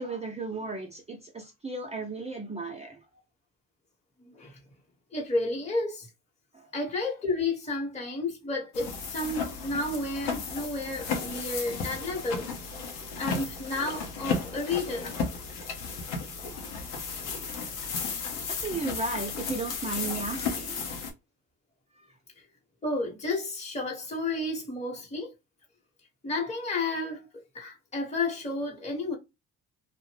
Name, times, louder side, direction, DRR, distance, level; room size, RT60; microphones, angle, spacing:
voice 1, 0.0-3.0 6.5-6.7 18.6-20.9, right 3 dB, 20° right, 0.6 m, -35 dB
voice 2, 4.3-4.6 5.1-6.1 6.7-12.5 13.2-15.1 22.8-25.3 26.2-27.3 27.5-29.2, left 2 dB, 20° left, 1.1 m, -31 dB
sound 1, 8.7-21.1, left 5 dB, 90° left, 0.7 m, -34 dB
2.6 x 2.1 x 3.1 m
supercardioid pair, 55°, 35 cm